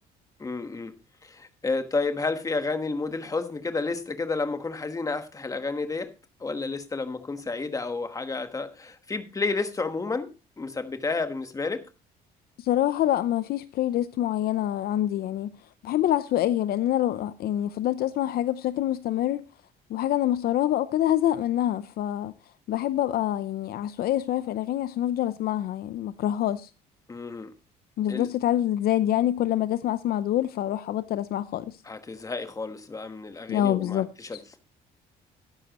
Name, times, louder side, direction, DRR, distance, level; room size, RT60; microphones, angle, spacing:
voice 1, 0.4-0.9 1.2-6.1 6.4-10.3 10.6-11.8 27.1-27.5 28.1-28.3 31.8-34.6, left 3 dB, 20° left, 1.3 m, -31 dB
voice 2, 12.6-15.5 15.8-19.4 19.9-22.3 22.7-26.7 28.0-31.7 33.5-34.4, left 12 dB, 65° left, 0.6 m, -26 dB
12.5 x 10.5 x 3.0 m
cardioid pair, 110°, 17 cm